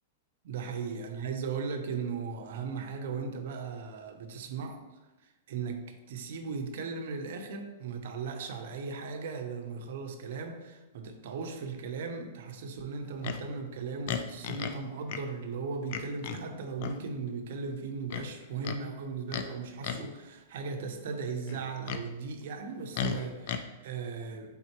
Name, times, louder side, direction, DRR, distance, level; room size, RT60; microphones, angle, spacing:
voice 1, 0.4-24.6, right 5 dB, 65° right, 5 dB, 0.6 m, -37 dB
Livestock farm animals working animals, 13.2-13.4 14.1-14.8 15.1-15.2 15.9-16.4 16.8-17.0 18.1-18.8 19.3-19.5 19.8-20.1 21.5-22.1 22.9-23.6, left 7 dB, 55° left, 0.4 m, -35 dB
4.4 x 3.5 x 2.9 m, 1.1 s
hypercardioid pair, 145°, 0 cm